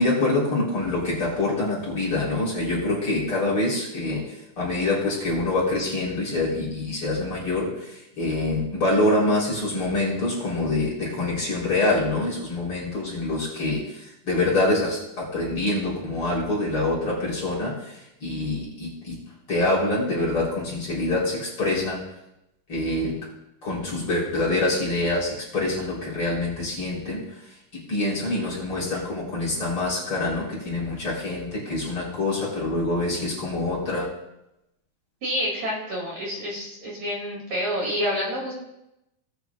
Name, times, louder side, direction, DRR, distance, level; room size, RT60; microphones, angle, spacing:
voice 1, 0.0-19.2 19.5-22.1 22.7-23.2 23.6-27.2 27.7-34.1, left 2 dB, 35° left, -5 dB, 4.1 m, -25 dB
voice 2, 35.2-38.5, equal, 50° right, -3 dB, 3.3 m, -28 dB
19.0 x 9.3 x 2.4 m, 0.86 s
omnidirectional pair, 4.7 m